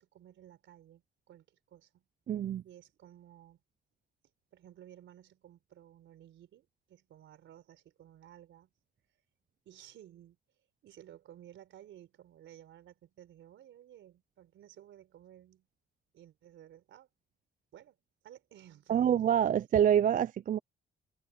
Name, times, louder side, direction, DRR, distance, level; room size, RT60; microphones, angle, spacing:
voice 1, 0.0-2.1 2.6-3.6 4.5-8.7 9.7-10.4 10.8-15.7 16.1-17.1 17.7-18.0 18.2-19.2, right 11 dB, 75° right, 4.1 m, -55 dB
voice 2, 2.3-2.6 18.9-20.6, right 9 dB, 45° right, 0.4 m, -26 dB
cardioid pair, 90°, 20 cm